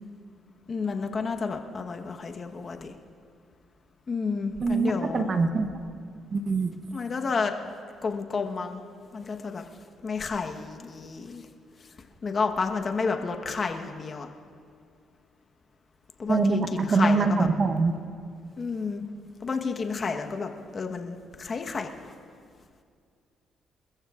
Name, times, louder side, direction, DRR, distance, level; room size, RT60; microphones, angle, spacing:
voice 1, 0.7-2.9 4.1-5.3 6.9-7.5 8.0-8.8 9.1-9.7 10.0-11.5 12.2-14.3 16.2-17.5 18.6-19.0 19.4-22.1, left 4 dB, 40° left, 4 dB, 1.2 m, -30 dB
voice 2, 4.6-5.7 6.3-6.7 16.3-17.9, right 4 dB, 45° right, 7 dB, 1.0 m, -24 dB
27.5 x 14.5 x 2.5 m, 2.2 s
cardioid pair, 80°, 0 cm